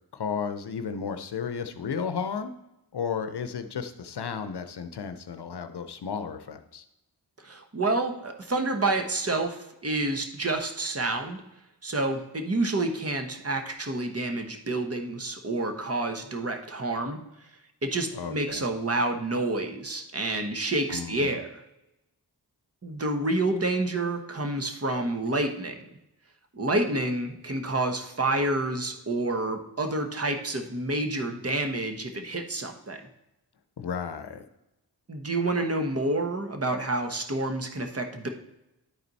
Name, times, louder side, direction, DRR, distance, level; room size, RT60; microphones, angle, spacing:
voice 1, 0.1-2.5 2.9-6.8 18.1-18.6 20.9-21.4 33.8-34.5, left 6 dB, 75° left, 9 dB, 0.7 m, -33 dB
voice 2, 7.4-11.4 11.8-17.2 17.8-21.6 22.8-25.8 26.5-33.0 35.1-38.3, right 2 dB, 35° right, 5 dB, 1.2 m, -28 dB
11.0 x 4.3 x 4.0 m, 0.88 s
cardioid pair, 45°, 40 cm